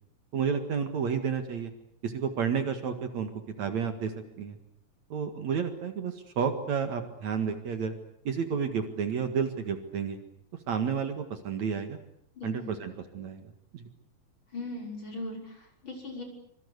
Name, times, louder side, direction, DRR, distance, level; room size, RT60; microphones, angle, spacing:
voice 1, 0.3-1.7 2.0-3.3 3.6-4.6 5.1-7.9 8.2-10.2 10.7-12.0 12.4-13.9, right 6 dB, 60° right, 7 dB, 2.9 m, -31 dB
voice 2, 12.3-12.7 14.5-16.2, left 2 dB, 35° left, 2 dB, 6.7 m, -39 dB
25.5 x 24.5 x 8.2 m, 0.68 s
omnidirectional pair, 3.9 m